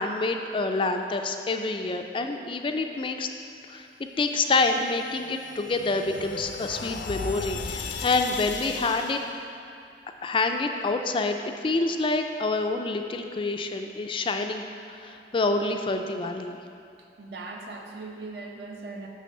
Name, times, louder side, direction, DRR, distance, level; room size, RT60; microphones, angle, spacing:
voice 1, 0.0-3.3 3.7-3.9 4.2-9.2 10.2-11.4 11.6-14.6 15.0-16.6, left 3 dB, 30° left, 5 dB, 0.4 m, -27 dB
sound 1, 4.8-9.3, left 4 dB, 80° left, 0.6 m, -36 dB
voice 2, 17.0-19.1, right 3 dB, 65° right, 1 dB, 0.9 m, -40 dB
9.7 x 3.3 x 6.5 m, 2.5 s
head